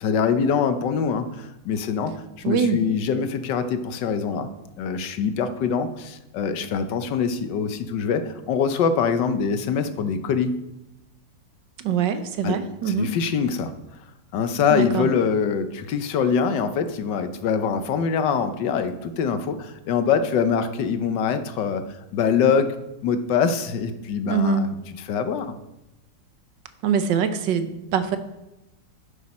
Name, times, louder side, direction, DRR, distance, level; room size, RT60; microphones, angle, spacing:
voice 1, 0.0-4.5 4.8-10.6 12.4-12.6 12.9-13.7 14.3-21.8 22.1-22.7 23.0-24.8 25.1-25.6, left 6 dB, 80° left, 10 dB, 1.5 m, -24 dB
voice 2, 2.4-2.8 11.8-13.1 14.7-15.1 24.3-24.7 26.8-28.2, right 7 dB, 85° right, 10 dB, 1.6 m, -23 dB
10.5 x 8.8 x 4.2 m, 0.95 s
omnidirectional pair, 1.9 m